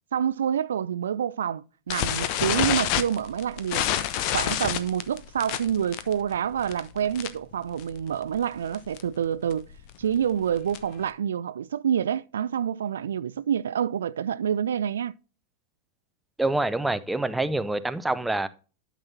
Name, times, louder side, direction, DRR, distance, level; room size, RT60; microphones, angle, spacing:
voice 1, 0.1-3.9 4.3-9.7 10.0-15.1, right 8 dB, 65° right, 0.3 m, -27 dB
sound 1, 1.9-7.5 7.8-8.1 8.3-8.4 8.7-9.0 9.5-11.0, left 11 dB, 45° left, 0.9 m, -28 dB
voice 2, 16.4-18.5, right 2 dB, 5° right, 0.6 m, -26 dB
12.0 x 6.0 x 2.8 m
figure-of-eight pair, 90°, 0 cm